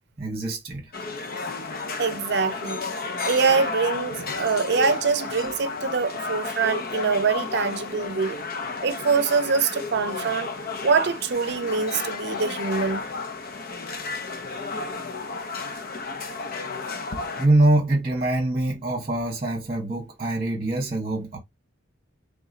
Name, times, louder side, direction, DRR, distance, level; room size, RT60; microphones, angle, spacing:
voice 1, 0.2-0.9 17.4-21.4, right 2 dB, 30° right, 1.2 m, -24 dB
sound 1, 0.9-17.5, left 4 dB, 50° left, 0.6 m, -32 dB
voice 2, 2.0-2.8 3.3-8.4 8.8-10.5 10.8-13.1, right 5 dB, 60° right, 0.6 m, -24 dB
3.5 x 3.1 x 3.7 m
head